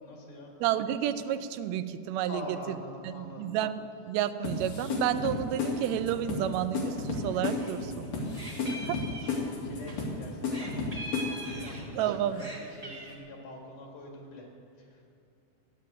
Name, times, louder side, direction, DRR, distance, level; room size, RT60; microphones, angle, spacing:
voice 1, 0.0-0.5 2.3-3.5 8.1-10.8 11.5-14.5 14.8-15.2, left 1 dB, 85° left, 0 dB, 3.7 m, -45 dB
voice 2, 0.6-2.8 3.0-8.1 8.7-9.0 11.5-12.4, right 11 dB, 80° right, 10 dB, 1.7 m, -31 dB
sound 1, 4.4-11.8, left 4 dB, 70° left, 3.4 m, -33 dB
Meow, 7.2-7.8 8.0-10.0 10.5-12.0 12.3-13.1, right 1 dB, 15° right, 1.5 m, -42 dB
14.0 x 9.8 x 7.6 m, 2.4 s
omnidirectional pair, 3.6 m